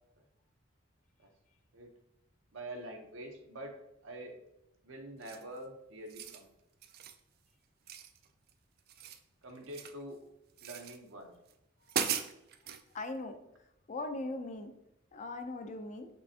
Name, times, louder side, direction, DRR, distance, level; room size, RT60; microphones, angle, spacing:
voice 1, 2.5-4.4 4.8-6.5 9.4-10.2 10.6-11.4, right 1 dB, 70° right, 4 dB, 0.8 m, -46 dB
sound 1, 5.2-5.6 6.0-6.4 6.8-7.2 7.9-8.5 8.8-10.0 10.6-11.0 11.5-11.6 11.9-12.8, right 8 dB, 50° right, 0.3 m, -38 dB
voice 2, 12.9-13.4 13.9-14.7 15.1-16.1, left 2 dB, 35° left, 7 dB, 0.4 m, -39 dB
5.4 x 3.3 x 2.7 m, 0.84 s
head